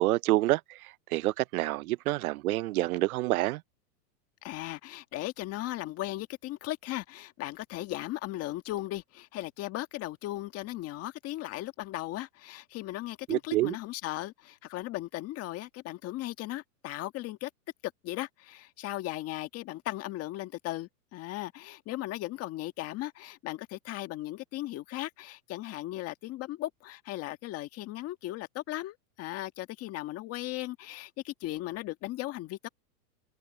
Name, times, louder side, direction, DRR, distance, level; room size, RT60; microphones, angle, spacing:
voice 1, 0.0-3.6 13.3-13.8, right 18 dB, 60° right, 0.7 m, -28 dB
voice 2, 4.4-17.5 18.0-32.7, left 16 dB, 30° left, 1.7 m, -37 dB
supercardioid pair, 150°, 50 cm